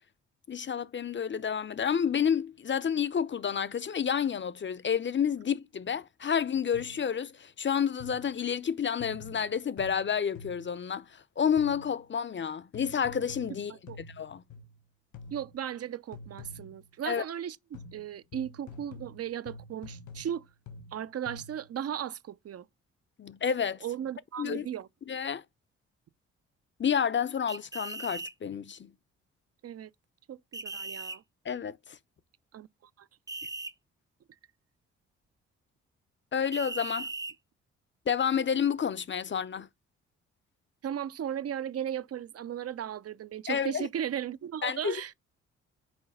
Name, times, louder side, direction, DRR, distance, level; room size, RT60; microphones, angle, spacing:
voice 1, 0.5-11.1 11.4-13.7 14.0-14.4 17.1-17.2 23.2-23.8 24.4-24.7 25.1-25.4 26.8-28.9 31.4-32.0 36.3-37.1 38.1-39.7 43.5-43.9 44.6-44.9, left 7 dB, 35° left, 0.7 m, -30 dB
sound 1, 6.7-7.1 8.0-8.4 9.0-10.8 11.6-12.0 12.7-14.8 15.1-15.6 16.1-16.9 17.7-21.7, left 3 dB, 70° left, 1.6 m, -48 dB
voice 2, 15.3-20.5 20.9-22.7 23.8-24.9 29.6-29.9 30.3-31.2 32.5-32.7 33.0-33.1 40.8-45.1, right 10 dB, 50° right, 0.6 m, -36 dB
sound 2, 27.5-28.3 30.5-31.2 33.3-33.7 36.5-37.4, right 3 dB, 10° right, 0.6 m, -38 dB
6.0 x 4.7 x 5.5 m
hypercardioid pair, 45°, 31 cm